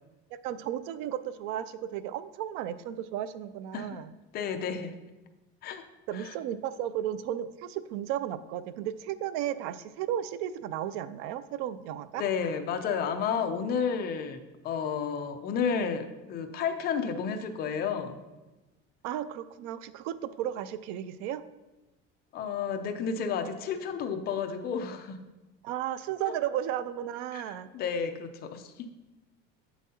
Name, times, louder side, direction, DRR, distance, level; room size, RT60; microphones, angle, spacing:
voice 1, 0.4-4.1 6.1-12.2 19.0-21.4 25.6-27.7, right 11 dB, 65° right, 14 dB, 0.4 m, -34 dB
voice 2, 4.3-5.0 5.6-5.8 6.1-6.4 12.1-18.2 22.3-25.2 27.3-28.9, left 6 dB, 30° left, 7 dB, 0.5 m, -31 dB
8.4 x 7.1 x 2.8 m, 1.1 s
cardioid pair, 180°, 30 cm